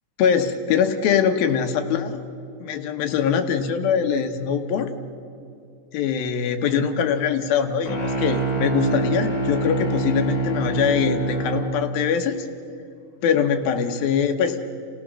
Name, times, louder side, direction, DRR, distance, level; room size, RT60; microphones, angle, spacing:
voice 1, 0.2-2.2 2.6-4.9 5.9-12.4 13.2-14.6, left 7 dB, 80° left, 6 dB, 3.0 m, -22 dB
sound 1, 7.9-11.8, right 3 dB, 35° left, 6.6 m, -25 dB
30.0 x 17.0 x 6.3 m, 2.6 s
omnidirectional pair, 4.2 m